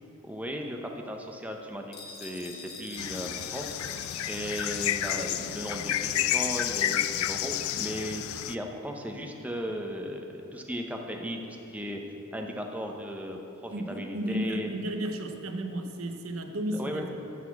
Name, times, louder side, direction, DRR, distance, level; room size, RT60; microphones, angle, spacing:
voice 1, 0.2-3.7 4.3-10.3 10.5-12.0 12.3-14.7 16.7-17.0, equal, 5° right, 2 dB, 0.6 m, -36 dB
sound 1, 1.9-6.1, left 4 dB, 50° left, 1.0 m, -46 dB
sound 2, 3.0-8.5, left 11 dB, 85° left, 0.3 m, -30 dB
voice 2, 13.7-17.0, right 1 dB, 85° right, 5 dB, 0.7 m, -33 dB
11.5 x 4.1 x 7.1 m, 3.0 s
head